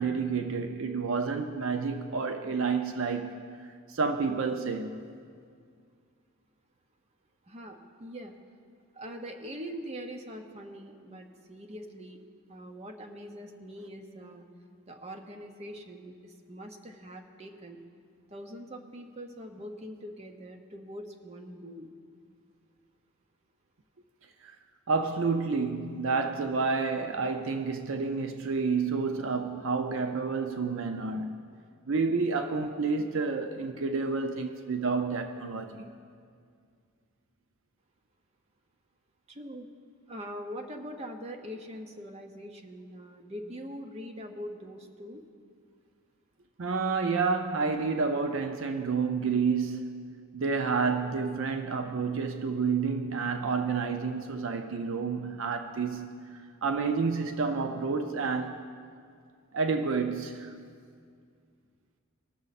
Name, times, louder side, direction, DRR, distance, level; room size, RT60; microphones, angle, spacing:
voice 1, 0.0-3.3 3.9-5.0 24.4-24.5 24.9-31.4 31.9-35.9 46.6-50.0 50.3-56.1 56.6-58.7 59.5-60.5, right 4 dB, 65° right, 0.5 m, -29 dB
voice 2, 7.5-8.3 8.9-12.2 12.5-14.4 14.9-17.8 18.3-21.9 39.3-39.7 40.1-45.2, equal, 30° right, 0.8 m, -43 dB
19.5 x 6.5 x 4.1 m
head